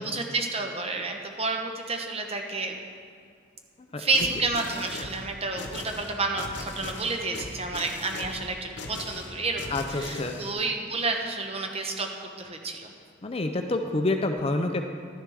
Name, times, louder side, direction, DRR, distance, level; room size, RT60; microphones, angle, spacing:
voice 1, 0.0-2.8 4.0-12.1 12.4-12.9, right 3 dB, 30° right, 3 dB, 0.9 m, -30 dB
sound 1, 4.1-10.5, left 2 dB, 65° left, 0.9 m, -39 dB
voice 2, 9.7-10.3 13.2-14.9, left 2 dB, 30° left, 5 dB, 0.5 m, -27 dB
12.0 x 10.5 x 3.5 m, 2.1 s
head